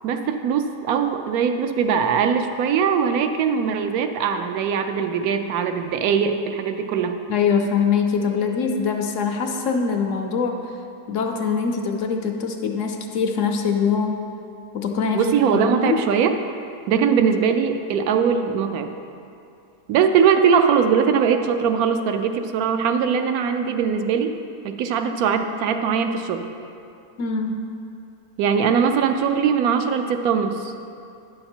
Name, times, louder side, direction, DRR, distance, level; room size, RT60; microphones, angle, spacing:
voice 1, 0.0-7.2 15.1-16.4 16.9-18.9 19.9-24.4 24.6-26.5 28.4-30.7, right 6 dB, 70° right, 7 dB, 1.0 m, -21 dB
voice 2, 7.3-10.7 11.1-14.2 14.7-16.0 27.2-27.7, left 5 dB, 65° left, 4 dB, 0.8 m, -23 dB
9.8 x 6.6 x 4.4 m, 2.6 s
omnidirectional pair, 1.7 m